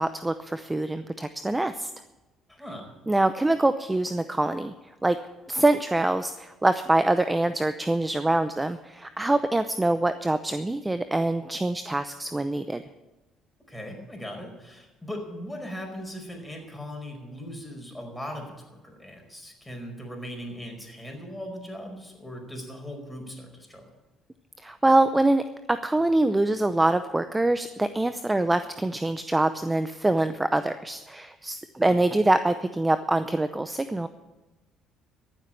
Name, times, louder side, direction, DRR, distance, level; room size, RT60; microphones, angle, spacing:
voice 1, 0.0-1.9 3.1-4.7 5.0-5.2 5.5-12.8 24.6-25.4 25.7-34.1, right 2 dB, 15° right, 11 dB, 0.7 m, -24 dB
voice 2, 2.5-2.9 13.7-23.8 31.8-32.0, equal, 10° left, 2 dB, 4.9 m, -39 dB
13.5 x 7.6 x 9.8 m, 1.1 s
supercardioid pair, 70°, 0 cm